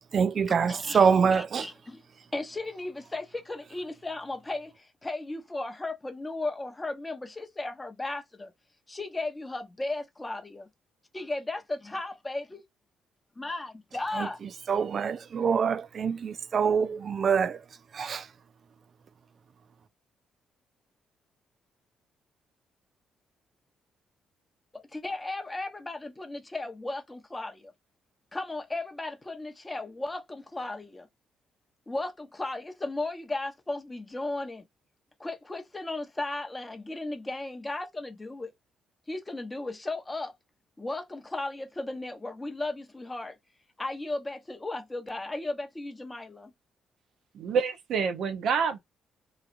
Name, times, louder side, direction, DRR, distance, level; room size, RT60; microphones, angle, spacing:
voice 1, 0.1-1.7 14.1-14.3 14.7-17.6 17.9-18.3, right 6 dB, 50° right, 0.3 m, -25 dB
voice 2, 0.6-2.0 2.3-8.5 8.9-10.7 11.1-12.6 13.4-14.4 24.7-27.7 28.3-31.1 31.9-34.6 35.2-38.5 39.1-40.3 40.8-43.4 43.8-46.5, left 2 dB, 15° left, 0.9 m, -35 dB
voice 3, 47.3-48.8, right 6 dB, 70° right, 0.7 m, -27 dB
3.1 x 2.3 x 2.5 m
cardioid pair, 90°, 0 cm